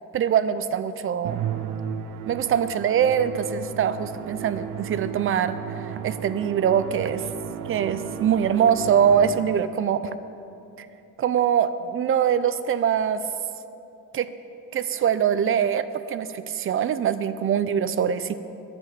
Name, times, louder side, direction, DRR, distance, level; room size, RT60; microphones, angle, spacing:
voice 1, 0.1-1.5 2.3-7.3 7.7-10.1 10.8-10.9 11.2-13.3 14.1-14.3 14.7-18.3, right 8 dB, 40° right, 13 dB, 0.4 m, -23 dB
Musical instrument, 1.2-9.8, right 8 dB, 80° right, 0.7 m, -34 dB
11.0 x 5.9 x 8.6 m, 2.9 s
cardioid pair, 170°, 33 cm